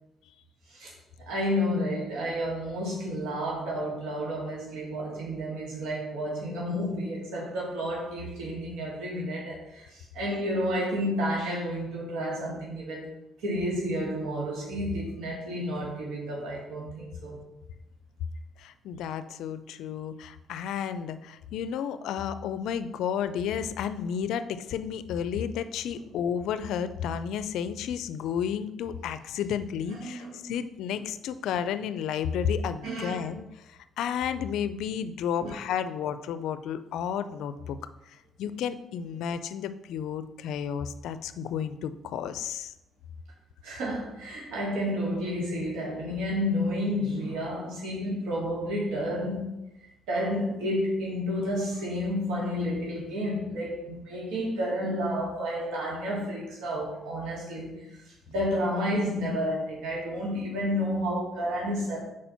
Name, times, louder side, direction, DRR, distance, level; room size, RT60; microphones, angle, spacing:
voice 1, 1.2-13.1 13.4-17.4 25.9-26.0 29.9-30.5 30.9-31.0 32.8-33.3 35.4-35.5 43.6-49.5 49.8-62.0, equal, 85° right, -4 dB, 2.2 m, -31 dB
voice 2, 18.6-33.4 34.0-37.8 38.4-42.7, left 8 dB, 80° left, 12 dB, 0.4 m, -32 dB
4.7 x 4.3 x 5.7 m, 0.90 s
cardioid pair, 100°, 0 cm